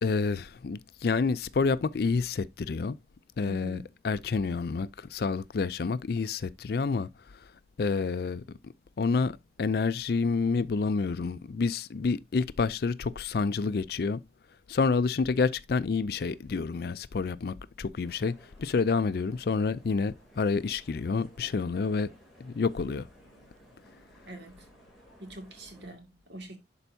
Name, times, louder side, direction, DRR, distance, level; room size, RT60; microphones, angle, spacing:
voice 1, 0.0-3.0 3.4-7.5 7.8-14.2 14.7-22.1 22.4-23.1, left 4 dB, 60° left, 0.4 m, -29 dB
voice 2, 3.5-3.8 24.3-24.7 25.2-26.6, right 1 dB, 75° right, 2.2 m, -44 dB
sound 1, 18.0-25.9, equal, ahead, 2.7 m, -57 dB
11.0 x 4.5 x 2.7 m
head